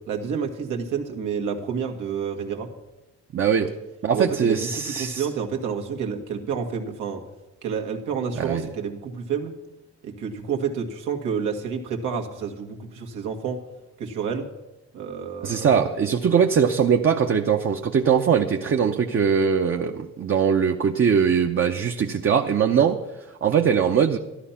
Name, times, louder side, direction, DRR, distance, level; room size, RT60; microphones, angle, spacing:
voice 1, 0.1-2.7 4.1-7.2 7.6-9.6 10.0-13.6 14.0-14.5 14.9-15.9, right 6 dB, 85° right, 2 dB, 1.8 m, -29 dB
voice 2, 3.3-3.7 4.0-5.3 8.4-8.7 15.4-23.0 23.4-24.2, right 7 dB, 45° right, 3 dB, 0.8 m, -21 dB
13.5 x 12.0 x 5.8 m, 1.0 s
cardioid pair, 90°, 30 cm